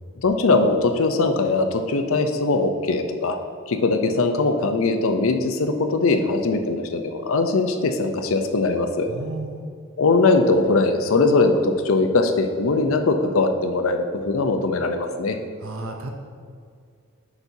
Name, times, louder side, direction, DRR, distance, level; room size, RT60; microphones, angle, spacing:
voice 1, 0.2-3.4 3.7-9.1 10.0-15.4, left 3 dB, 80° left, 6 dB, 0.6 m, -21 dB
voice 2, 9.1-9.6 15.6-16.1, right 2 dB, 80° right, 3 dB, 0.6 m, -32 dB
8.1 x 5.9 x 2.7 m, 2.2 s
head